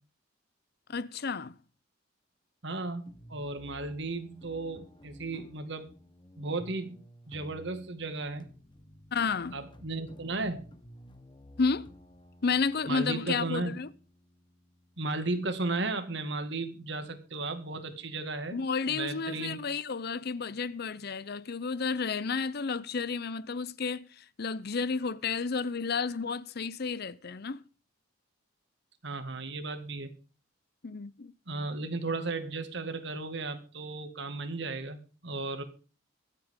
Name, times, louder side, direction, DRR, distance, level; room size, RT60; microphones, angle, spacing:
voice 1, 0.9-1.5 9.1-9.6 11.6-11.9 12.4-13.9 18.5-24.1 24.4-27.6 30.8-31.3, left 5 dB, 50° left, 0.6 m, -31 dB
voice 2, 2.6-5.9 6.4-7.0 7.3-8.5 9.5-10.6 12.9-13.8 15.0-18.6 18.9-19.6 29.0-30.1 31.5-35.6, right 3 dB, 60° right, 2.0 m, -35 dB
sound 1, 3.1-15.9, equal, 25° left, 1.2 m, -54 dB
23.5 x 8.4 x 3.7 m
head